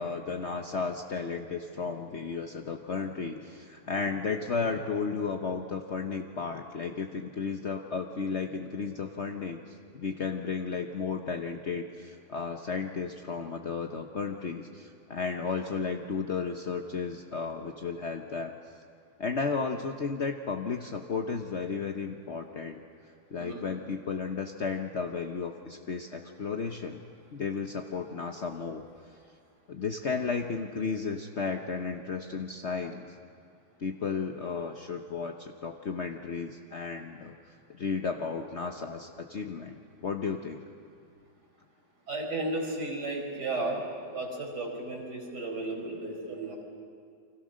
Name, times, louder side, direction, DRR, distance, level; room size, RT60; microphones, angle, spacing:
voice 1, 0.0-18.5 19.2-22.8 23.3-27.0 27.3-28.8 29.7-33.1 33.8-40.6, left 5 dB, 50° left, 3 dB, 1.2 m, -34 dB
voice 2, 42.1-43.8 44.1-46.6, right 2 dB, 80° right, 1 dB, 5.5 m, -34 dB
30.0 x 25.5 x 6.5 m, 2.3 s
omnidirectional pair, 1.7 m